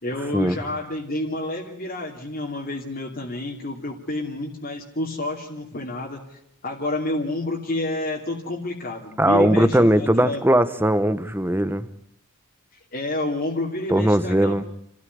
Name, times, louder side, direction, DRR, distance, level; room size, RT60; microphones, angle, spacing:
voice 1, 0.0-10.4 12.9-14.6, left 2 dB, 45° left, -1 dB, 2.8 m, -29 dB
voice 2, 9.2-11.9 13.9-14.6, right 1 dB, 10° right, 14 dB, 1.0 m, -19 dB
29.0 x 14.0 x 9.5 m, 0.73 s
head